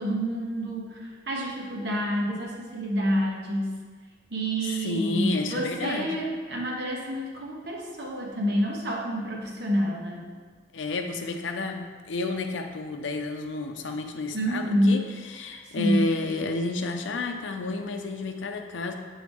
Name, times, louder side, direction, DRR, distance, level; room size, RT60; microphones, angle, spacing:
voice 1, 0.0-3.7 4.3-10.3 14.3-15.0 15.6-16.1, equal, 60° right, -2 dB, 1.1 m, -28 dB
voice 2, 4.8-6.1 10.7-18.9, left 2 dB, 80° left, 4 dB, 0.5 m, -31 dB
7.6 x 3.8 x 3.5 m, 1.5 s
head